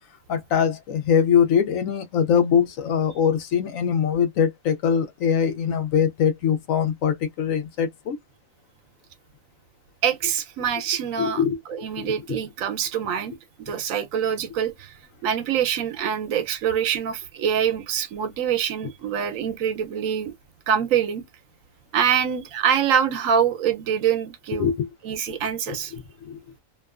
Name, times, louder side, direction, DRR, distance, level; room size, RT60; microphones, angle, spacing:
voice 1, 0.3-8.2 11.2-11.6 12.0-12.1 24.6-24.9 25.3-25.4 25.7-26.4, left 7 dB, 85° left, 1.0 m, -22 dB
voice 2, 10.0-11.4 11.7-15.0 15.2-20.3 20.7-21.2 21.9-24.7 25.0-25.9, right 8 dB, 80° right, 1.0 m, -25 dB
2.7 x 2.2 x 2.3 m
omnidirectional pair, 1.4 m